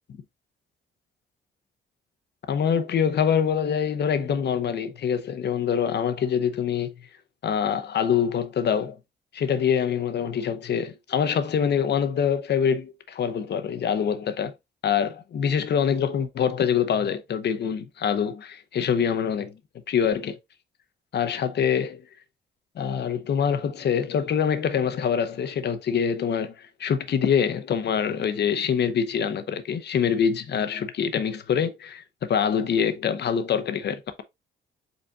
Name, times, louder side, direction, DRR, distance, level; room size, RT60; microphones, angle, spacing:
voice 1, 2.5-6.9 7.4-9.0 9.3-14.5 14.8-19.5 19.9-20.4 21.1-22.0 22.8-26.5 26.8-32.0 32.3-34.2, left 7 dB, 60° left, 0.9 m, -25 dB
5.3 x 4.2 x 2.3 m
supercardioid pair, 60°, 20 cm